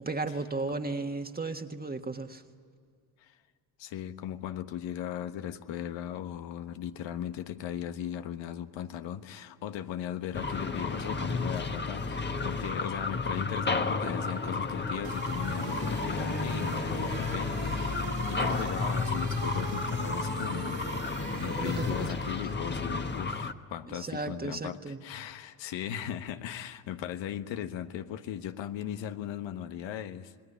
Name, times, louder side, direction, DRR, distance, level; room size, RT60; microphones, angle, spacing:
voice 1, 0.0-2.4 21.6-22.4 23.9-25.0, right 3 dB, 20° right, 5 dB, 1.6 m, -35 dB
voice 2, 3.8-20.9 21.4-30.3, left 10 dB, 75° left, 9 dB, 1.3 m, -38 dB
sound 1, 10.3-23.5, left 3 dB, 25° left, 1.4 m, -32 dB
sound 2, 15.0-22.5, right 6 dB, 55° right, 2.9 m, -42 dB
28.0 x 20.0 x 10.0 m, 2.2 s
supercardioid pair, 70°, 45 cm